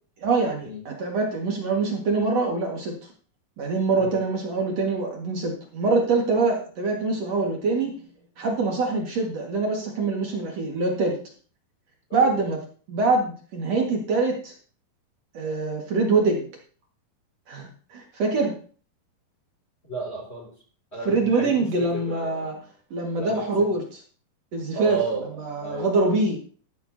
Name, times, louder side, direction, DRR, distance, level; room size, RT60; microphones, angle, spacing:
voice 1, 0.2-2.9 3.6-7.9 8.4-11.2 12.1-12.6 12.9-14.5 15.3-16.5 17.5-18.5 21.1-22.6 22.9-23.8 24.5-25.0 25.4-26.4, right 3 dB, 55° right, 0 dB, 2.7 m, -24 dB
voice 2, 19.9-20.5 20.9-22.5 23.1-23.7 24.7-26.1, right 3 dB, 20° left, 0 dB, 2.6 m, -33 dB
13.5 x 12.0 x 2.8 m, 0.42 s
omnidirectional pair, 3.9 m